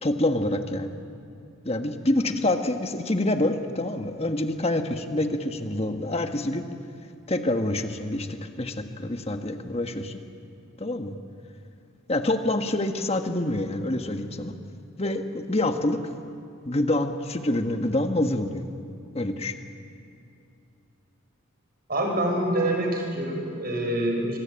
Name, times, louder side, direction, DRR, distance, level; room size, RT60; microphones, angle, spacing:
voice 1, 0.0-1.0 1.6-6.6 7.3-10.2 10.8-11.1 12.1-14.5 15.0-16.0 16.6-18.7 19.1-19.6, left 1 dB, 30° left, 6 dB, 1.4 m, -26 dB
voice 2, 21.9-24.4, right 1 dB, 45° right, 1 dB, 5.7 m, -26 dB
24.5 x 22.5 x 8.8 m, 2.5 s
head